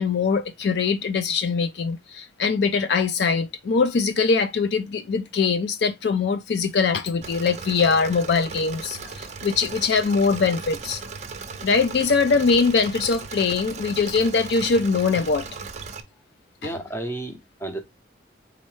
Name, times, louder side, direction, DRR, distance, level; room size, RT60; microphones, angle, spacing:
voice 1, 0.0-11.0 11.6-15.5 16.6-16.7, left 5 dB, 55° left, 0.4 m, -22 dB
Engine / Mechanisms, 7.2-16.0, right 4 dB, 35° right, 0.5 m, -37 dB
voice 2, 16.6-17.8, right 1 dB, 10° left, 0.6 m, -32 dB
4.2 x 3.7 x 3.1 m
head